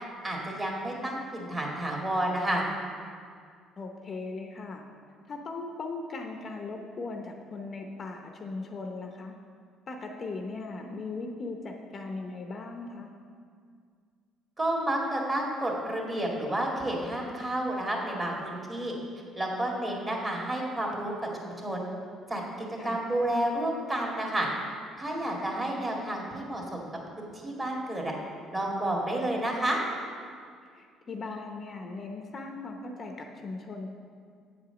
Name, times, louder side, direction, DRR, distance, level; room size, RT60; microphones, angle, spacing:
voice 1, 0.2-2.6 14.6-18.9 19.4-21.1 21.4-21.9 22.3-22.4 22.8-24.5 25.0-26.8 27.2-28.1 28.5-29.8, right 1 dB, 25° right, -2 dB, 2.1 m, -30 dB
voice 2, 3.8-4.8 5.3-9.4 9.9-13.1 22.8-23.1 30.7-33.9, left 3 dB, 40° left, 3 dB, 0.8 m, -38 dB
8.4 x 4.9 x 6.9 m, 2.1 s
cardioid pair, 105°, 0 cm